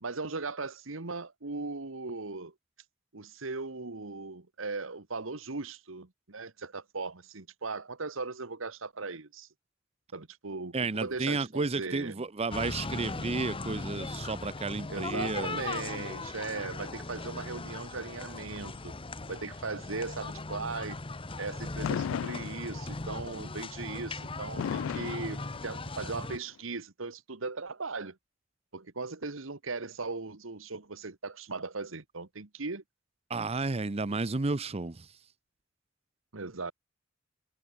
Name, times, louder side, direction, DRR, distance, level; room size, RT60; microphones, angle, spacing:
voice 1, 0.0-2.5 3.1-9.5 10.1-12.1 14.9-18.9 19.3-21.0 21.4-28.2 28.7-32.8 36.3-36.7, right 3 dB, 85° right, 1.5 m, -38 dB
voice 2, 10.7-15.9 33.3-35.1, right 3 dB, 30° right, 0.7 m, -32 dB
sound 1, 12.5-26.4, left 3 dB, 25° left, 1.1 m, -39 dB
Fireworks, 21.8-23.1 24.6-26.1, left 8 dB, 75° left, 0.3 m, -35 dB
head